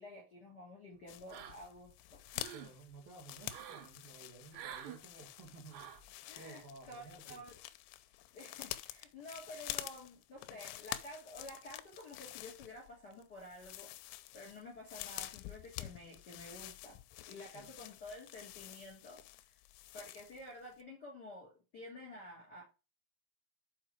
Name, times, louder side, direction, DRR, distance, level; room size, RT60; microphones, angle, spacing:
voice 1, 0.0-2.2 6.3-6.6 6.9-7.5 8.3-13.9 14.3-17.0 17.3-19.6 19.9-22.6, left 1 dB, 40° left, -1 dB, 1.5 m, -51 dB
sound 1, 1.1-20.5 20.8-20.9, left 15 dB, 85° left, 2.7 m, -48 dB
sound 2, 1.3-1.8 2.2-2.7 3.5-3.9 4.5-5.0 5.7-6.1, right 10 dB, 85° right, 3.9 m, -48 dB
voice 2, 2.5-5.9 6.3-7.4 17.5-17.8, right 3 dB, 55° right, 0 dB, 3.1 m, -54 dB
7.7 x 4.9 x 4.7 m, 0.29 s
omnidirectional pair, 5.8 m